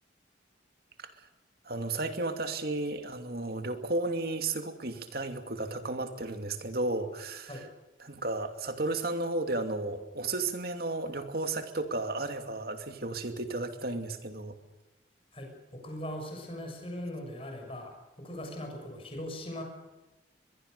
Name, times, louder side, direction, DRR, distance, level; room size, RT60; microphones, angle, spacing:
voice 1, 1.6-7.6 8.0-14.6, right 2 dB, 50° right, 7 dB, 2.6 m, -33 dB
voice 2, 15.3-19.6, left 1 dB, 30° left, 3 dB, 6.9 m, -40 dB
23.0 x 22.5 x 6.8 m, 1.1 s
head